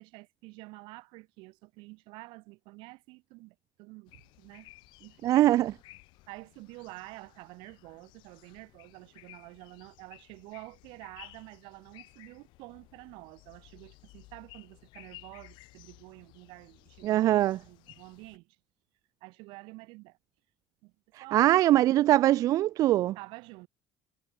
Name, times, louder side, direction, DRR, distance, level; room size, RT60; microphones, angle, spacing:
voice 1, 0.0-4.7 5.0-5.2 6.3-17.3 17.6-18.6 19.2-20.2 20.8-20.9 21.2-21.5 23.2-23.7, right 24 dB, 80° right, 7.2 m, -49 dB
sound 1, 4.1-18.4, left 21 dB, 70° left, 6.3 m, -56 dB
voice 2, 5.2-5.7 17.0-17.6 21.3-23.1, right 14 dB, 45° right, 0.5 m, -22 dB
cardioid pair, 180°, 8 cm